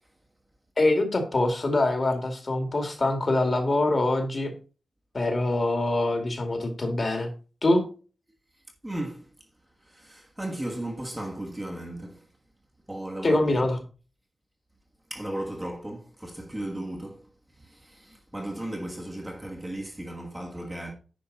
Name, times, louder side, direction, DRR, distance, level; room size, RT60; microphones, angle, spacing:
voice 1, 0.8-4.5 5.1-7.3 7.6-7.8 13.2-13.8, left 2 dB, 35° left, 2.2 m, -24 dB
voice 2, 8.8-9.3 9.9-12.2 12.9-13.4 15.1-17.2 17.6-20.9, right 1 dB, 10° right, 1.4 m, -35 dB
10.0 x 6.3 x 4.0 m
wide cardioid pair, 180°, 0 cm